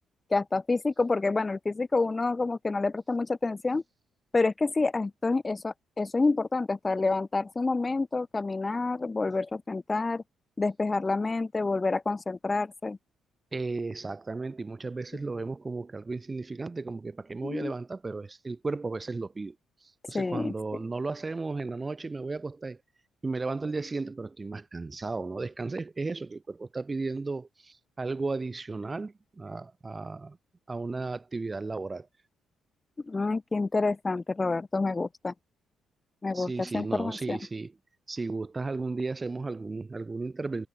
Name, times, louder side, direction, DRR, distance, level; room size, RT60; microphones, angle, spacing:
voice 1, 0.3-3.8 4.3-10.2 10.6-13.0 17.4-17.7 20.1-20.5 33.1-35.3 36.2-37.4, left 3 dB, 25° left, 0.7 m, -28 dB
voice 2, 13.5-19.6 19.8-22.8 23.2-30.4 30.7-32.1 36.3-37.7 38.1-40.7, right 3 dB, 25° right, 2.1 m, -34 dB
cardioid pair, 90°, 0 cm